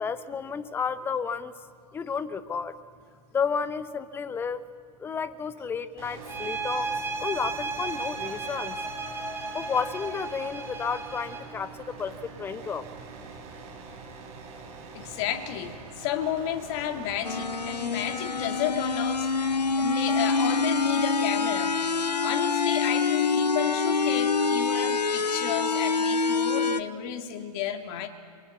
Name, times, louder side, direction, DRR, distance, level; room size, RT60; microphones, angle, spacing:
voice 1, 0.0-1.5 1.9-2.7 3.3-4.6 5.0-6.9 7.2-12.8, left 6 dB, 10° left, 15 dB, 0.7 m, -32 dB
sound 1, 6.0-21.9, right 4 dB, 30° right, 6.7 m, -45 dB
sound 2, 6.3-11.6, right 3 dB, 10° right, 1.8 m, -34 dB
voice 2, 14.9-21.8 22.2-28.1, left 10 dB, 35° left, 6 dB, 2.1 m, -32 dB
sound 3, 17.2-26.8, left 4 dB, 80° left, 0.8 m, -26 dB
23.5 x 19.5 x 8.1 m, 2.2 s
figure-of-eight pair, 105°, 21 cm